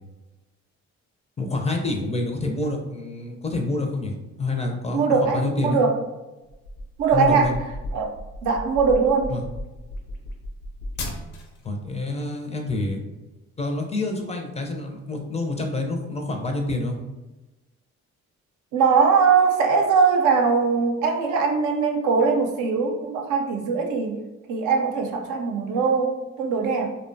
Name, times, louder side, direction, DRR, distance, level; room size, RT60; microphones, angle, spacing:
voice 1, 1.4-5.8 7.1-7.5 9.3-9.4 11.6-13.0 13.6-17.0, left 2 dB, 20° left, 2 dB, 0.4 m, -27 dB
voice 2, 4.9-6.0 7.0-7.5 7.9-9.4 18.7-24.2 24.5-27.0, right 5 dB, 80° right, 3 dB, 0.5 m, -21 dB
sound 1, 6.5-11.7, left 1 dB, 70° left, 0.6 m, -35 dB
2.6 x 2.1 x 2.5 m, 1.1 s
cardioid pair, 90°, 30 cm